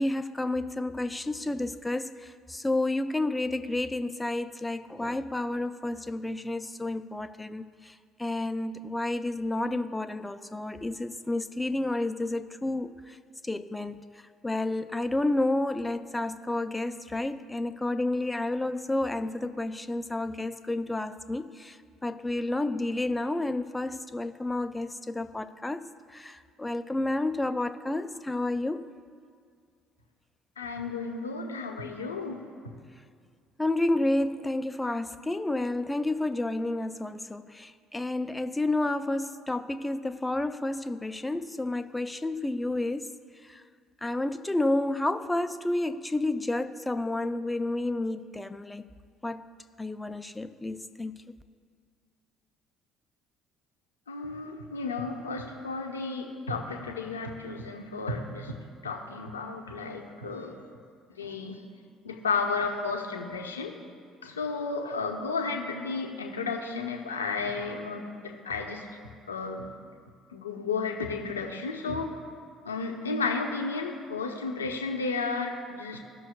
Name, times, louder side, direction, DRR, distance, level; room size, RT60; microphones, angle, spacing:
voice 1, 0.0-13.2 13.4-14.0 14.4-21.8 22.0-28.8 33.6-43.1 43.5-43.6 44.0-48.8 49.2-49.5 49.8-51.1, left 2 dB, 10° left, 10 dB, 0.5 m, -30 dB
voice 2, 30.6-32.4 54.1-58.6 58.8-60.6 61.2-61.6 62.0-63.7 64.2-68.9 69.3-69.7 70.3-72.1 72.6-76.0, left 4 dB, 80° left, 2 dB, 0.8 m, -33 dB
16.5 x 6.2 x 2.3 m, 2.1 s
figure-of-eight pair, 55°, 0 cm